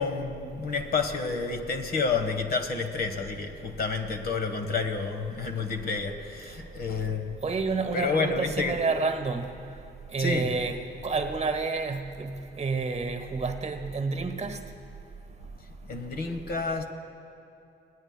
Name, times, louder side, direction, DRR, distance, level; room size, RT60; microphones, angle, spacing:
voice 1, 0.0-7.4 7.7-8.8 10.2-10.6 15.9-16.9, left 4 dB, 50° left, 6 dB, 1.2 m, -30 dB
voice 2, 7.4-9.5 10.1-14.6, right 4 dB, 35° right, 7 dB, 1.1 m, -29 dB
23.0 x 17.5 x 2.2 m, 2.6 s
cardioid pair, 90°, 20 cm